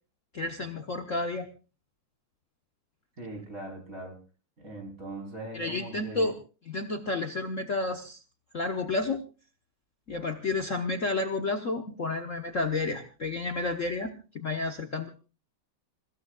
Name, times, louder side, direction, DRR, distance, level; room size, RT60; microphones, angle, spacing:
voice 1, 0.3-1.5 5.5-6.3 6.7-8.2 8.5-9.2 10.1-15.1, left 3 dB, 45° left, 4 dB, 1.3 m, -31 dB
voice 2, 3.2-4.2 4.6-6.3, right 1 dB, 40° right, 3 dB, 5.0 m, -40 dB
28.5 x 16.5 x 2.4 m, 0.35 s
omnidirectional pair, 2.3 m